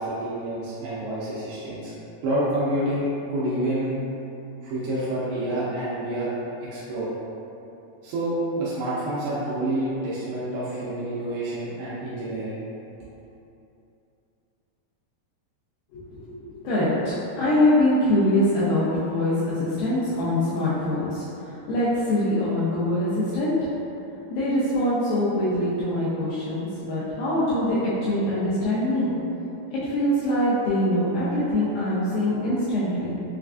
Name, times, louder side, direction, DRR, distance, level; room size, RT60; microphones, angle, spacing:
voice 1, 0.0-1.9 2.2-4.0 4.6-6.3 6.6-7.1 8.0-12.6, right 1 dB, 85° right, -9 dB, 2.7 m, -28 dB
voice 2, 15.9-23.5 24.3-29.1 29.7-33.2, left 1 dB, 90° left, -10 dB, 2.0 m, -24 dB
6.2 x 2.4 x 2.3 m, 2.8 s
omnidirectional pair, 4.7 m